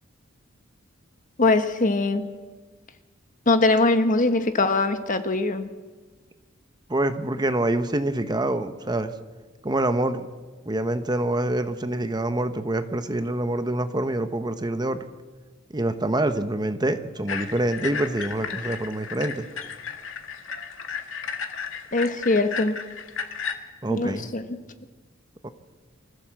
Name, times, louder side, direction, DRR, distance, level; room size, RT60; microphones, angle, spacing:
voice 1, 1.4-2.2 3.5-5.7 21.9-22.8 23.9-24.4, left 2 dB, 40° left, 9 dB, 1.4 m, -22 dB
voice 2, 6.9-9.1 9.6-10.2 10.7-15.0 15.7-19.5 23.8-24.3 25.4-25.5, right 1 dB, 20° right, 10 dB, 1.0 m, -26 dB
sound 1, 17.3-23.5, left 6 dB, 75° left, 1.8 m, -34 dB
24.5 x 15.0 x 7.6 m, 1.4 s
head